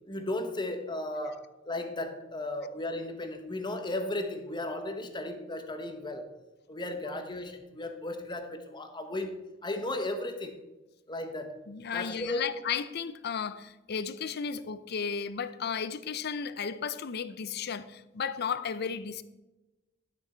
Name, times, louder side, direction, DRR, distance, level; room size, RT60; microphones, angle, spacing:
voice 1, 0.0-6.3 6.7-10.6 11.1-11.6 11.9-12.5, left 1 dB, 25° left, 1.0 m, -35 dB
voice 2, 11.7-19.2, left 6 dB, 55° left, 0.5 m, -34 dB
11.5 x 6.3 x 4.4 m
head